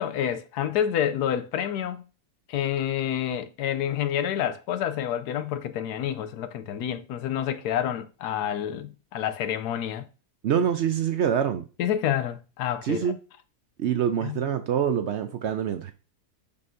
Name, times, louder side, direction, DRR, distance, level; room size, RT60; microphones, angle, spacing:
voice 1, 0.0-2.0 2.5-10.1 11.8-13.1 14.2-14.4, left 10 dB, 80° left, 1.2 m, -28 dB
voice 2, 10.4-11.7 12.8-13.2 13.8-15.9, right 8 dB, 75° right, 0.6 m, -25 dB
6.8 x 5.5 x 2.6 m
omnidirectional pair, 1.7 m